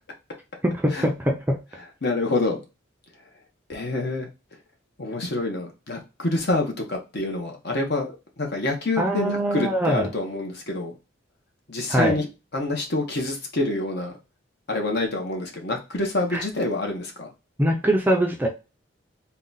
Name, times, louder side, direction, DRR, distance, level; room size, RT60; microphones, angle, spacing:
voice 1, 0.6-1.6 9.0-10.1 11.9-12.2 16.3-16.4 17.6-18.5, right 1 dB, 10° right, 1 dB, 0.5 m, -22 dB
voice 2, 2.0-2.6 3.7-4.3 5.0-10.9 11.7-12.3 12.5-14.1 14.7-17.3, left 2 dB, 50° left, 2 dB, 0.9 m, -27 dB
3.8 x 2.3 x 3.9 m, 0.28 s
head